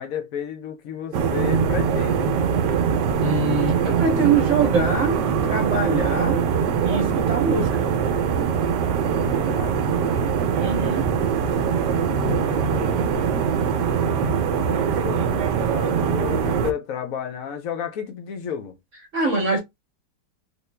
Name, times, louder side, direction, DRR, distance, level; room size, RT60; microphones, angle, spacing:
voice 1, 0.0-2.3 9.2-10.2 12.2-13.1 14.5-18.8, left 8 dB, 60° left, 1.0 m, -33 dB
sound 1, 1.1-16.7, right 7 dB, 75° right, 1.3 m, -22 dB
voice 2, 3.2-6.4 6.8-7.9 10.6-11.1 19.1-19.6, right 4 dB, 50° right, 1.2 m, -23 dB
3.6 x 2.4 x 3.3 m
omnidirectional pair, 1.9 m